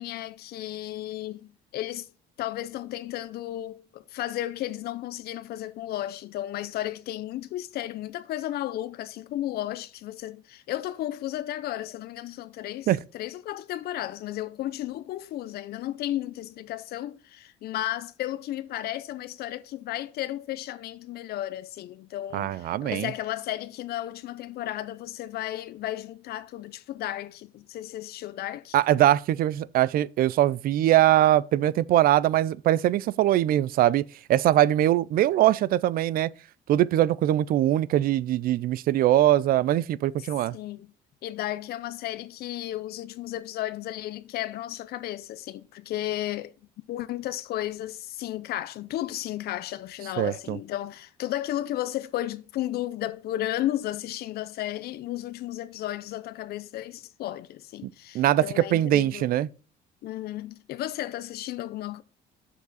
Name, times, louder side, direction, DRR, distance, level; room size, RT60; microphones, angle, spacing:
voice 1, 0.0-2.1 2.4-28.8 40.5-40.9 41.2-46.5 46.9-59.3 60.0-62.0, left 14 dB, 65° left, 0.5 m, -34 dB
voice 2, 22.3-23.1 28.7-36.3 36.7-40.6 50.2-50.6 57.8-59.5, right 13 dB, 60° right, 0.4 m, -22 dB
7.3 x 6.9 x 4.0 m
cardioid pair, 110°, 17 cm